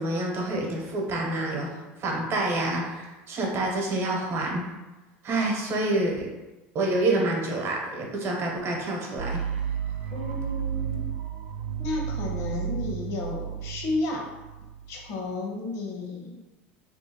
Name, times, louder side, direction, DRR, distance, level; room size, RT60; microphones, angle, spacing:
voice 1, 0.0-1.7 2.0-4.6 5.2-6.3 6.7-9.4, right 2 dB, 45° right, 0 dB, 0.9 m, -27 dB
sound 1, 9.2-15.1, right 8 dB, 85° right, 0.4 m, -32 dB
voice 2, 10.1-11.0 11.8-14.3 14.9-16.4, left 3 dB, 60° left, 0 dB, 0.8 m, -32 dB
3.2 x 2.7 x 2.8 m, 1.1 s
supercardioid pair, 95°, 6 cm